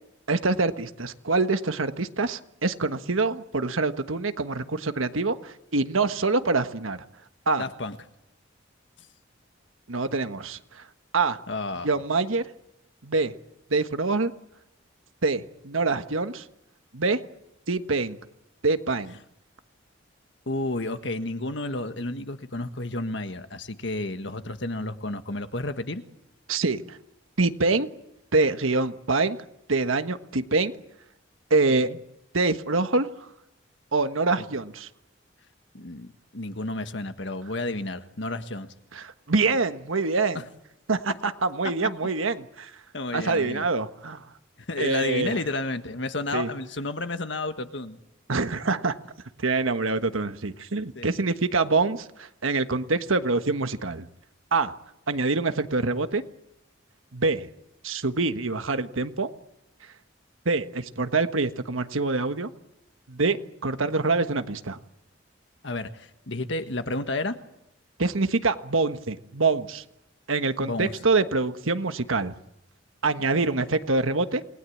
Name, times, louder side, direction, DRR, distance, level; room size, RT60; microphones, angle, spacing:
voice 1, 0.3-7.0 7.5-7.6 9.9-10.8 11.1-11.4 11.8-12.5 13.0-13.3 13.7-14.3 15.2-16.4 16.9-17.2 17.7-18.2 18.6-19.2 26.5-27.0 27.4-27.9 28.3-29.4 29.7-30.7 31.5-31.9 32.3-33.1 33.9-34.9 38.9-40.4 40.9-42.7 43.1-44.2 44.8-45.4 46.3-46.5 48.3-48.9 49.4-54.0 54.5-54.7 55.1-56.2 57.1-57.5 57.8-59.3 60.4-62.5 63.1-64.8 68.0-69.8 70.3-72.3 73.0-74.4, right 3 dB, 90° right, 9 dB, 1.4 m, -25 dB
voice 2, 7.6-8.0 11.5-11.9 20.5-26.0 31.8-32.0 34.4-34.5 35.7-36.1 36.3-38.7 40.3-40.4 42.9-43.7 44.7-48.0 50.9-51.2 65.6-67.4 70.6-70.9 73.2-73.5, left 2 dB, 65° left, 9 dB, 1.6 m, -31 dB
28.0 x 20.0 x 8.6 m, 0.88 s
head